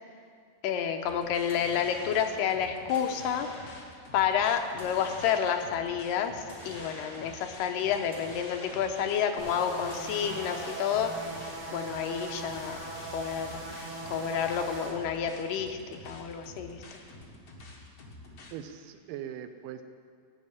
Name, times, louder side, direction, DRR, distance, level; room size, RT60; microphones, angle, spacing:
voice 1, 0.6-3.5 4.1-11.1 11.7-12.8 13.1-13.6 14.1-15.8 16.0-16.8, left 8 dB, 80° left, 5 dB, 2.4 m, -29 dB
sound 1, 1.0-18.5, left 2 dB, 60° left, 0.9 m, -49 dB
sound 2, 1.5-2.5 2.9-4.0 4.8-5.8 6.5-7.5 8.1-9.2 9.9-11.0, equal, 10° left, 3.9 m, -46 dB
sound 3, 9.4-14.9, right 2 dB, 60° right, 4.4 m, -40 dB
voice 2, 18.5-19.8, right 10 dB, 80° right, 7 dB, 2.3 m, -40 dB
14.0 x 6.4 x 8.8 m, 2.3 s
omnidirectional pair, 4.0 m